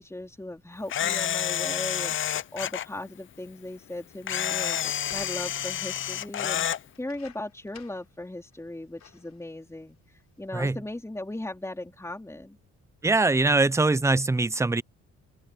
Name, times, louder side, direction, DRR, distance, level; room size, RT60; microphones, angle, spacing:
voice 1, 0.0-4.8 5.1-6.7 7.0-12.6, left 1 dB, 10° left, 3.7 m, -37 dB
Camera, 0.9-2.9 4.3-6.8, left 10 dB, 40° left, 0.5 m, -29 dB
sound 1, 5.0-5.8 6.9-8.2 8.5-8.6 9.0-9.4 10.2-10.3, left 9 dB, 60° left, 4.5 m, -50 dB
voice 2, 13.0-14.8, right 3 dB, 10° right, 0.5 m, -22 dB
open air
cardioid pair, 90°, 30 cm